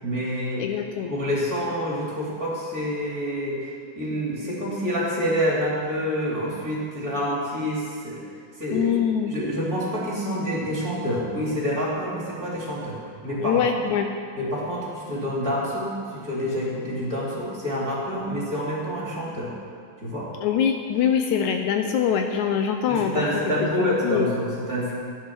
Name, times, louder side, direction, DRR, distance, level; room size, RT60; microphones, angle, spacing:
voice 1, 0.0-0.7 1.1-3.7 4.0-8.2 8.6-8.9 9.3-13.0 13.2-13.8 14.4-19.5 20.0-20.3 22.9-24.9, equal, 30° right, -6 dB, 3.3 m, -27 dB
voice 2, 0.6-1.1 8.7-9.3 13.4-14.1 20.4-23.5 23.8-24.3, left 8 dB, 75° left, 5 dB, 2.0 m, -24 dB
15.5 x 10.5 x 6.1 m, 2.2 s
omnidirectional pair, 3.6 m